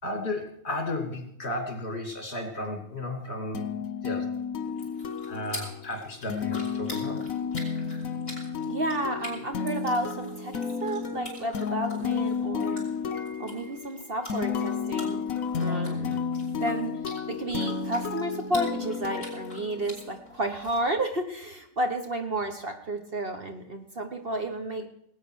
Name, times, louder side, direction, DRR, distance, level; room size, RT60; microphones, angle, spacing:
voice 1, 0.0-4.3 5.2-7.2, left 1 dB, 45° left, 5 dB, 2.7 m, -34 dB
sound 1, 3.5-20.2, left 6 dB, 70° left, 1.4 m, -32 dB
sound 2, 4.6-20.8, left 1 dB, 30° left, 4.8 m, -46 dB
voice 2, 8.6-10.5 10.8-12.8 13.1-15.2 15.5-16.2 16.5-17.0 17.3-24.9, right 1 dB, 40° right, 5 dB, 1.3 m, -31 dB
18.5 x 9.1 x 6.3 m, 0.70 s
omnidirectional pair, 1.5 m